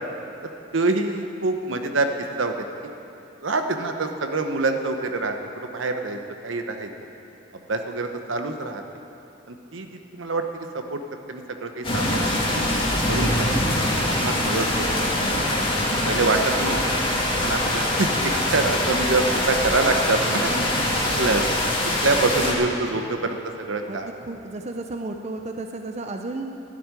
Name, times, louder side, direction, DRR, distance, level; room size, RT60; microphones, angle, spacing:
voice 1, 0.7-2.1 2.4-2.5 3.4-6.9 7.7-8.8 9.5-10.4 10.7-11.0 11.3-12.5 13.1-13.5 14.1-15.0 16.0-16.8 17.4-20.5 21.2-21.4 22.0-24.1, right 3 dB, 85° right, 5 dB, 1.0 m, -25 dB
sound 1, 11.8-22.5, left 1 dB, 25° left, 2.1 m, -23 dB
voice 2, 24.2-26.6, right 2 dB, 35° right, 4 dB, 0.6 m, -33 dB
12.5 x 7.7 x 9.7 m, 2.9 s
head